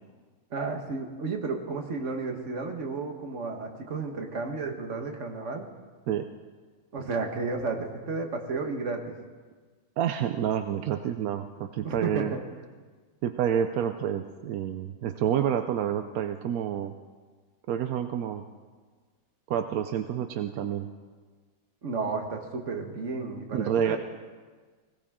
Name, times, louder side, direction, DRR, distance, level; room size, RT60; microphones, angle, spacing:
voice 1, 0.5-5.7 6.9-9.1 11.8-12.4 21.8-24.0, right 4 dB, 40° right, 3 dB, 1.6 m, -32 dB
voice 2, 10.0-12.3 13.2-16.9 17.7-18.4 19.5-20.9 23.5-24.0, right 9 dB, 70° right, 8 dB, 0.9 m, -28 dB
20.5 x 17.0 x 3.7 m, 1.5 s
omnidirectional pair, 2.1 m